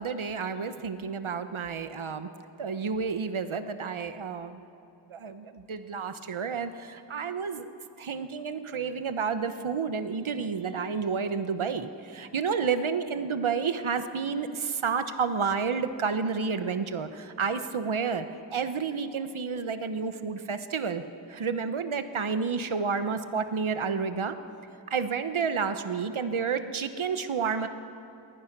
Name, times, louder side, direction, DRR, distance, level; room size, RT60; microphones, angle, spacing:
voice 1, 0.0-2.3 2.6-4.6 5.1-7.7 8.0-21.0 21.3-24.4 24.9-27.7, right 5 dB, 85° right, 10 dB, 1.1 m, -30 dB
27.0 x 20.0 x 6.1 m, 2.7 s
wide cardioid pair, 60°, 47 cm